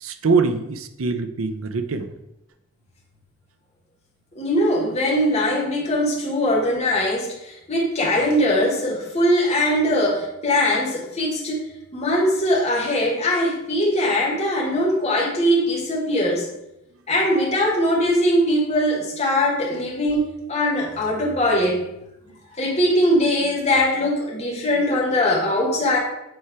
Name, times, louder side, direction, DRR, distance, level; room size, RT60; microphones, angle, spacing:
voice 1, 0.0-2.2, right 4 dB, 80° right, 9 dB, 0.6 m, -23 dB
voice 2, 4.3-11.6 11.9-16.5 17.1-21.9 22.6-26.0, left 1 dB, 30° left, -3 dB, 1.7 m, -21 dB
8.4 x 3.5 x 4.7 m, 0.87 s
head